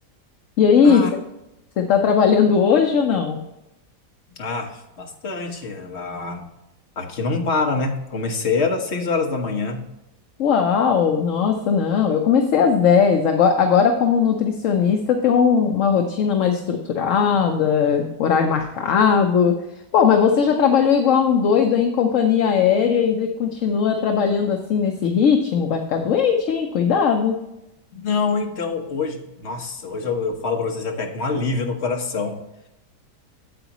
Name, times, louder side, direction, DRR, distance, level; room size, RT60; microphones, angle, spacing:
voice 1, 0.6-1.0 1.8-3.4 10.4-19.6 19.9-27.4, left 6 dB, 60° left, 4 dB, 1.0 m, -18 dB
voice 2, 4.3-6.5 7.0-9.8 27.9-32.4, left 4 dB, 45° left, 3 dB, 1.4 m, -25 dB
8.8 x 8.2 x 3.0 m, 0.93 s
omnidirectional pair, 1.8 m